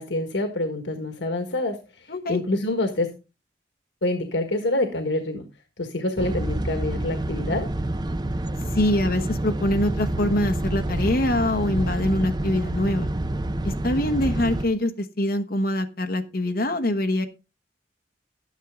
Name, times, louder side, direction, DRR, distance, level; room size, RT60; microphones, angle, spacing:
voice 1, 0.0-3.1 4.0-5.5 5.8-7.7, left 2 dB, 80° left, 6 dB, 1.5 m, -26 dB
voice 2, 2.1-2.4 8.7-13.1 13.6-17.3, left 1 dB, 55° left, 6 dB, 1.1 m, -24 dB
sound 1, 6.2-14.7, right 1 dB, 25° right, 0.5 m, -28 dB
12.0 x 10.0 x 3.7 m, 0.29 s
head